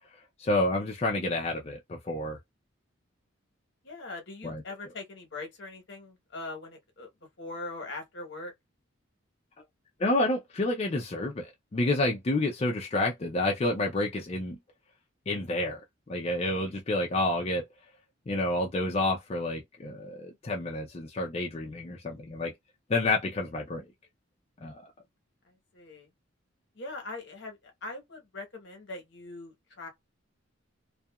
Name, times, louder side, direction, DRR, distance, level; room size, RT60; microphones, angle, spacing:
voice 1, 0.4-2.4 4.4-4.6 10.0-14.6 15.3-15.8 16.1-17.6 18.3-22.5 22.9-23.8 24.6-24.8, left 2 dB, 30° left, 0.4 m, -29 dB
voice 2, 3.8-7.1 7.4-8.5 25.4-26.1 26.7-29.9, left 2 dB, 60° left, 1.0 m, -41 dB
2.7 x 2.4 x 2.2 m
head